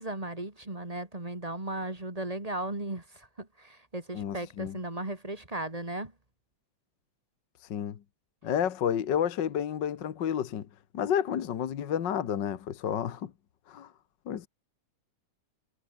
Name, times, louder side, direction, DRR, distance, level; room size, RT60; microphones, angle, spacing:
voice 1, 0.0-6.1, right 2 dB, 15° right, 2.2 m, -36 dB
voice 2, 4.1-4.8 7.7-8.0 8.4-10.6 10.9-13.3 13.7-13.9 14.3-14.5, left 9 dB, 50° left, 1.5 m, -30 dB
omnidirectional pair, 3.3 m